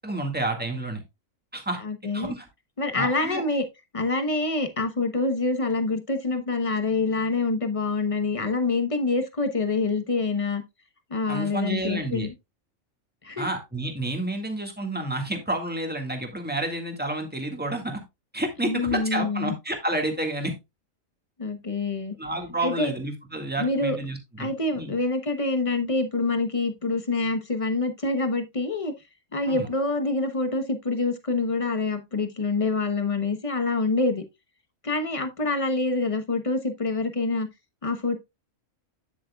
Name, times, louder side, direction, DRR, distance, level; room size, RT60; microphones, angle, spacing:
voice 1, 0.0-1.0 1.5-1.8 2.1-2.5 2.9-3.4 11.3-12.3 13.4-18.0 18.3-20.5 22.2-24.9 29.5-29.7, right 1 dB, 5° right, 1.8 m, -30 dB
voice 2, 1.8-2.3 2.8-3.6 3.9-10.6 11.1-12.3 13.2-13.5 18.6-19.5 21.4-22.1 22.6-22.9 23.6-24.0 24.4-28.9 29.3-34.2 34.8-37.5 37.8-38.2, left 3 dB, 25° left, 1.1 m, -26 dB
9.4 x 8.4 x 2.3 m
omnidirectional pair, 1.4 m